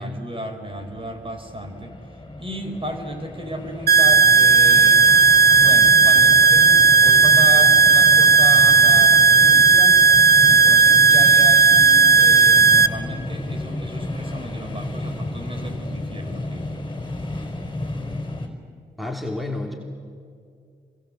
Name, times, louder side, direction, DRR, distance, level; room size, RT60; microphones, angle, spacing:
voice 1, 0.0-1.9 2.4-5.1 5.5-10.0 10.5-16.7, right 1 dB, 30° right, 5 dB, 4.9 m, -34 dB
sound 1, 0.7-18.5, left 2 dB, 25° left, 5.0 m, -32 dB
sound 2, 3.9-12.9, right 4 dB, 55° right, 1.0 m, -13 dB
voice 2, 19.0-19.7, left 2 dB, ahead, 1 dB, 3.3 m, -30 dB
28.5 x 23.5 x 8.0 m, 2.2 s
supercardioid pair, 45°, 19 cm